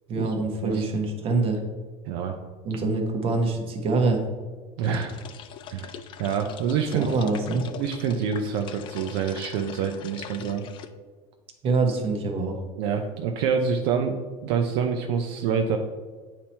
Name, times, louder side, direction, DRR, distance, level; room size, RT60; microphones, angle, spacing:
voice 1, 0.1-1.6 2.6-4.2 4.8-5.1 6.9-7.6 11.6-12.6, right 3 dB, 40° right, 2 dB, 1.1 m, -25 dB
voice 2, 2.0-2.4 4.8-5.1 5.7-5.9 6.2-7.1 7.8-10.7 12.8-15.8, right 6 dB, 70° right, 4 dB, 0.5 m, -26 dB
sound 1, 4.8-10.9, left 9 dB, 35° left, 0.4 m, -42 dB
8.6 x 2.9 x 4.3 m, 1.4 s
cardioid pair, 145°, 14 cm